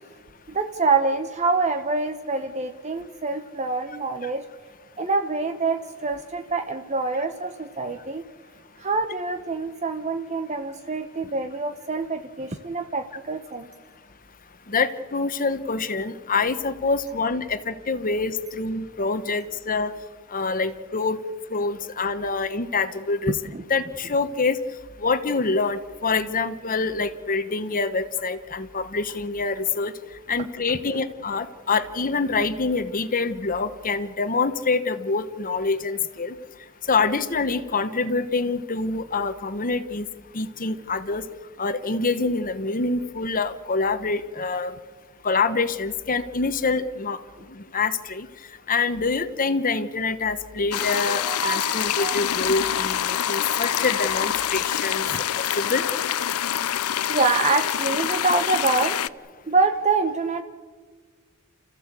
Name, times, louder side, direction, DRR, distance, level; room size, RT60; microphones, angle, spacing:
voice 1, 0.5-4.4 5.0-8.2 8.8-13.7 23.3-23.6 51.1-52.2 55.1-55.2 57.1-59.0 59.5-60.4, right 3 dB, 30° right, 7 dB, 1.0 m, -26 dB
voice 2, 14.7-19.9 20.3-21.2 21.5-23.4 23.7-24.6 25.0-29.9 30.3-36.3 36.9-40.1 40.3-41.2 41.6-44.7 45.2-47.2 47.6-48.3 48.7-55.1 55.4-55.8, left 4 dB, 40° left, 11 dB, 1.1 m, -25 dB
sound 1, 50.7-59.1, left 10 dB, 85° left, 0.6 m, -26 dB
29.5 x 15.0 x 8.3 m, 1.5 s
head